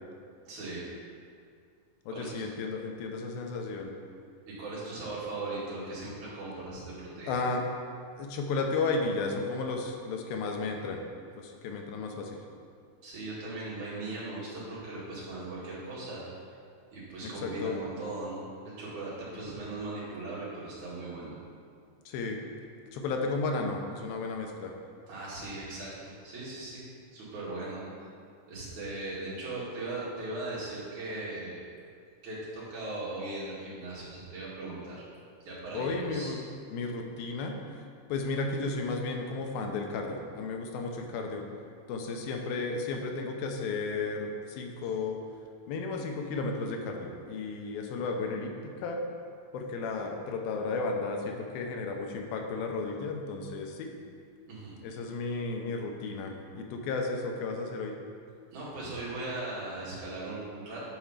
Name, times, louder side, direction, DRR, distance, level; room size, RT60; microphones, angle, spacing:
voice 1, 0.4-1.1 2.1-2.5 4.5-7.3 13.0-16.5 16.9-21.3 25.1-26.8 27.1-28.1 28.5-31.7 32.2-35.0 35.4-36.3 54.5-54.8 58.5-60.8, right 2 dB, 55° right, -8 dB, 3.4 m, -39 dB
voice 2, 2.1-3.9 7.3-7.7 8.2-11.0 11.4-12.4 17.2-17.8 22.1-22.4 22.9-24.7 35.7-36.4 36.7-37.5 38.1-41.5 41.9-45.2 45.7-49.0 49.5-53.9 54.8-58.0, left 3 dB, 85° left, 3 dB, 2.6 m, -33 dB
9.1 x 4.9 x 5.7 m, 2.2 s
omnidirectional pair, 4.1 m